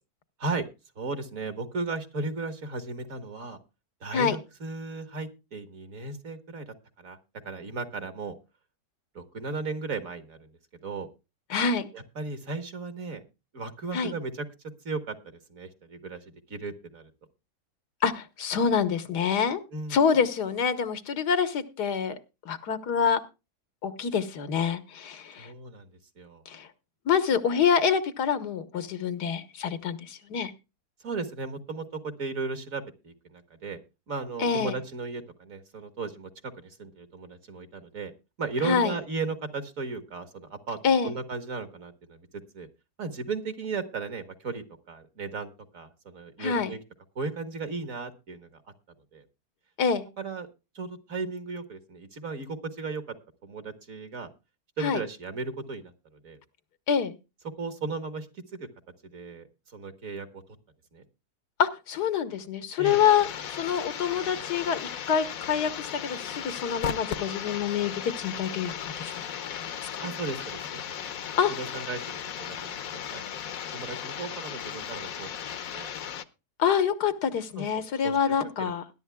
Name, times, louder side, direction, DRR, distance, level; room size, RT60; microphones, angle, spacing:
voice 1, 1.0-3.6 4.0-7.2 7.4-8.4 9.1-11.1 11.9-13.2 13.5-14.5 14.8-17.1 19.7-20.0 25.4-26.4 31.0-33.8 34.1-38.1 38.4-40.8 41.0-42.7 43.0-46.8 47.2-48.6 49.1-49.2 50.2-50.5 50.7-53.2 53.4-54.3 54.8-56.4 57.6-58.7 59.1-60.4 60.9-61.0 62.8-63.0 70.0-73.4 73.7-75.3 75.7-75.9 77.6-78.7, right 4 dB, 55° right, 9 dB, 2.0 m, -36 dB
voice 2, 11.5-11.9 13.9-14.1 18.0-19.6 19.9-22.2 22.5-23.2 23.8-25.5 26.5-26.7 27.1-30.5 34.4-34.7 38.6-38.9 40.8-41.1 46.4-46.7 49.8-50.1 54.8-55.0 56.9-57.1 61.6-69.1 69.6-70.0 71.4-71.5 76.6-78.8, left 7 dB, 80° left, 11 dB, 1.8 m, -26 dB
sound 1, 62.8-76.2, left 8 dB, 65° left, 1.2 m, -36 dB
20.5 x 11.5 x 2.3 m, 0.28 s
omnidirectional pair, 1.7 m